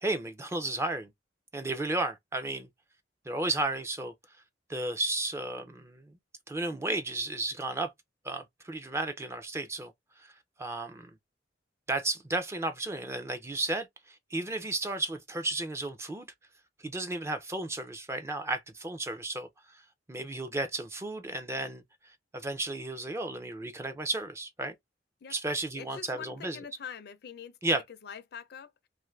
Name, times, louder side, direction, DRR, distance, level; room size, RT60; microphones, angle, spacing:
voice 1, 0.0-1.1 1.5-2.7 3.3-4.1 4.7-6.1 6.5-7.9 8.2-9.9 10.2-10.3 10.6-11.1 11.9-16.3 16.8-19.5 20.1-21.8 22.3-24.7 25.3-26.6 27.6-27.8, right 2 dB, 15° right, 0.4 m, -33 dB
voice 2, 25.7-27.6 28.0-28.9, left 7 dB, 60° left, 0.4 m, -44 dB
2.5 x 2.4 x 3.1 m
head